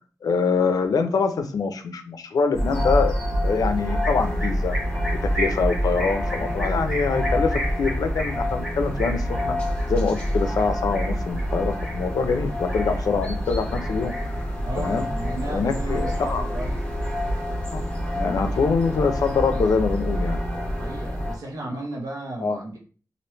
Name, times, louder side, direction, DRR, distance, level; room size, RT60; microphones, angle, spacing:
voice 1, 0.2-4.7 5.3-9.6 9.9-14.1 14.8-15.1 15.5-16.5 17.7-17.8 18.1-20.4 22.4-22.6, left 5 dB, 85° left, 8 dB, 0.5 m, -24 dB
sound 1, 2.5-21.4, equal, 20° left, 1.2 m, -27 dB
sound 2, 4.0-13.4 13.7-14.5 14.8-15.8 16.0-17.4, equal, 10° right, 0.9 m, -35 dB
voice 2, 14.6-16.8 20.8-22.8, right 2 dB, 70° right, -1 dB, 1.0 m, -34 dB
3.2 x 2.5 x 3.0 m, 0.39 s
wide cardioid pair, 140°, 6 cm